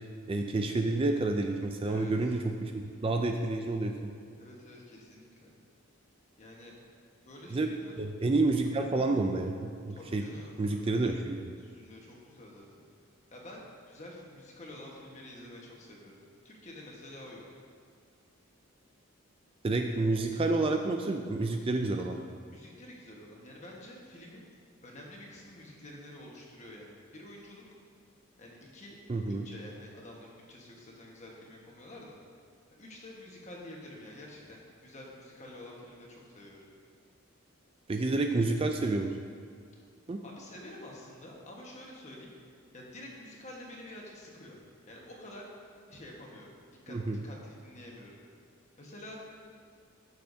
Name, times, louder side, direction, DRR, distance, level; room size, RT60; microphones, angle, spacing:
voice 1, 0.3-4.1 7.5-10.2 10.6-11.4 19.6-22.3 29.1-29.5 37.9-39.1 40.1-40.2 46.9-47.2, right 2 dB, 25° right, 4 dB, 0.3 m, -29 dB
voice 2, 1.8-2.3 4.4-5.6 6.4-6.7 7.2-7.9 9.9-11.3 11.6-12.9 13.3-16.2 16.4-17.4 22.5-24.5 24.8-27.6 28.4-29.0 29.2-32.2 32.8-36.6 40.2-42.3 42.7-44.6 44.9-45.5 45.9-46.5 46.9-48.2 48.8-49.2, left 1 dB, 35° left, -2 dB, 1.3 m, -49 dB
13.0 x 6.8 x 2.7 m, 2.2 s
head